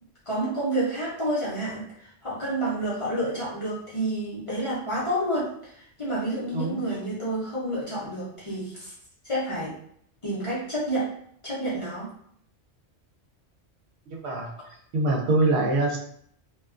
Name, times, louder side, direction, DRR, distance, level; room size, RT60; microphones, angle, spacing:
voice 1, 0.3-8.9 9.2-9.7 10.2-11.1 11.4-12.1, right 1 dB, 35° left, -9 dB, 0.7 m, -29 dB
voice 2, 14.1-14.5 14.9-16.0, right 2 dB, 70° right, -1 dB, 0.8 m, -24 dB
2.3 x 2.2 x 2.4 m, 0.66 s
omnidirectional pair, 1.2 m